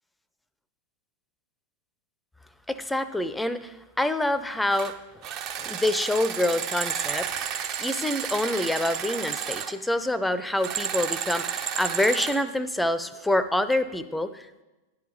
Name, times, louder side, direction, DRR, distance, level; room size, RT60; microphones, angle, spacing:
voice 1, 2.7-4.9 5.6-14.6, left 1 dB, 5° left, 12 dB, 0.5 m, -27 dB
sound 1, 4.7-4.9 5.2-9.7 10.6-12.4, right 8 dB, 40° right, 0.6 m, -31 dB
10.5 x 5.7 x 5.1 m, 1.1 s
figure-of-eight pair, 90°, 0 cm